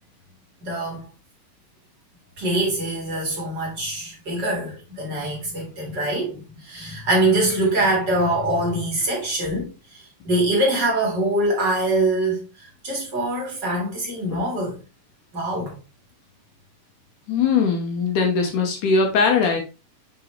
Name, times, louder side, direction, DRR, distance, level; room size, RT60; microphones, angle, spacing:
voice 1, 0.6-1.0 2.4-12.4 12.8-14.7 15.3-15.7, right 1 dB, 40° right, 1.6 m, -24 dB
voice 2, 17.3-19.6, left 5 dB, 75° left, 1.9 m, -20 dB
7.4 x 4.2 x 3.1 m
omnidirectional pair, 4.9 m